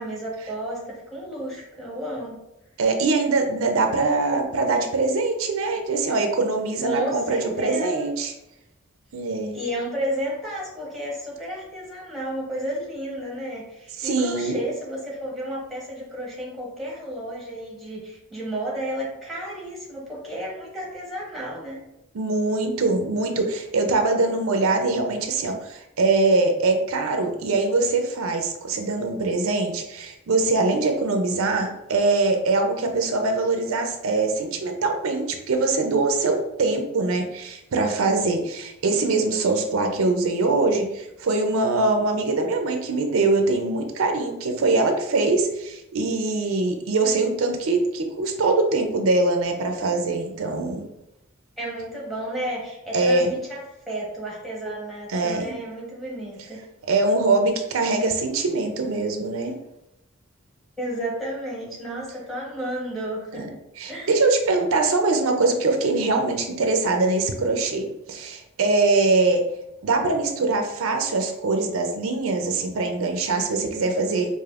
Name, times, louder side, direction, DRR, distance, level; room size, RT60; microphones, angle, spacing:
voice 1, 0.0-2.5 6.8-7.9 9.5-21.8 51.6-56.6 60.8-63.6 63.9-64.1, right 1 dB, ahead, -5 dB, 1.0 m, -32 dB
voice 2, 2.8-8.3 9.1-9.6 14.0-14.6 22.1-50.8 52.9-53.3 55.1-55.6 56.9-59.5 63.3-63.5 63.8-69.5 69.8-74.3, right 3 dB, 75° right, 4 dB, 0.5 m, -23 dB
4.9 x 2.5 x 2.4 m, 0.88 s
head